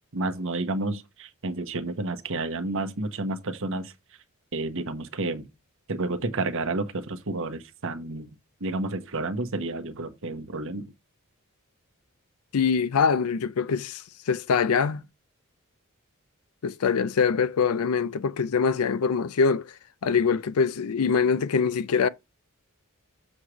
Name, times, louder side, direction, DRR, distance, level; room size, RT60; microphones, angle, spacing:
voice 1, 0.1-3.9 4.5-5.5 5.9-8.3 8.6-10.9, right 2 dB, 65° right, 1.0 m, -30 dB
voice 2, 12.5-15.0 16.6-19.7 20.0-22.1, left 5 dB, 80° left, 0.5 m, -24 dB
7.3 x 3.3 x 6.1 m
head